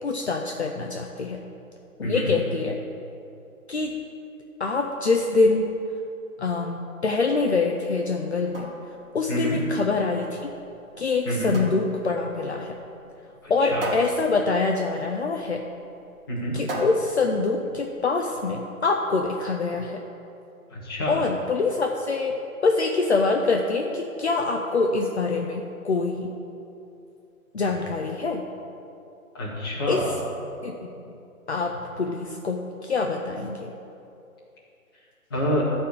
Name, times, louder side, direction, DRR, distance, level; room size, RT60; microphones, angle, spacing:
voice 1, 0.0-1.4 2.0-2.8 3.7-4.0 4.6-5.7 6.4-8.7 9.1-10.5 11.0-12.8 13.5-15.7 16.5-20.0 21.1-22.3 22.6-26.4 27.5-28.5 29.9-30.0 30.6-30.9 31.5-33.7, left 3 dB, 50° left, 2 dB, 0.7 m, -25 dB
sound 1, 8.3-18.3, right 1 dB, 40° right, 1.5 m, -38 dB
voice 2, 9.3-9.6 11.2-11.6 13.4-13.9 16.3-16.6 20.7-21.2 29.3-30.0 35.3-35.6, equal, 15° left, -8 dB, 1.7 m, -27 dB
12.5 x 4.4 x 8.3 m, 2.7 s
hypercardioid pair, 175°, 42 cm